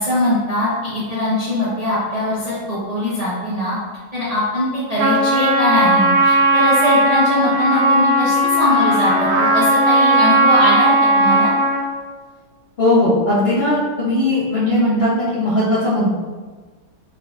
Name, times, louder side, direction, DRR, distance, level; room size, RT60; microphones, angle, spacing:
voice 1, 0.0-3.7 4.1-11.5, left 1 dB, 40° right, -10 dB, 0.5 m, -21 dB
Trumpet, 5.0-11.9, right 1 dB, 70° right, 1.1 m, -16 dB
voice 2, 12.8-16.1, left 1 dB, 70° left, -9 dB, 0.5 m, -18 dB
3.8 x 3.8 x 2.4 m, 1.4 s
omnidirectional pair, 2.2 m